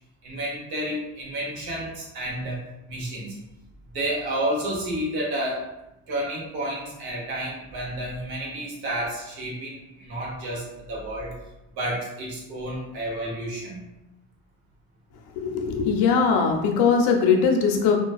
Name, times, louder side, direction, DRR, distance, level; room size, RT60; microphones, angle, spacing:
voice 1, 0.2-2.6 2.9-3.4 3.9-5.7 6.1-11.3 11.8-13.9, right 1 dB, 65° right, -3 dB, 1.0 m, -30 dB
voice 2, 15.3-18.0, left 5 dB, 75° left, 2 dB, 0.6 m, -20 dB
2.4 x 2.2 x 2.3 m, 0.91 s
cardioid pair, 130°, 40 cm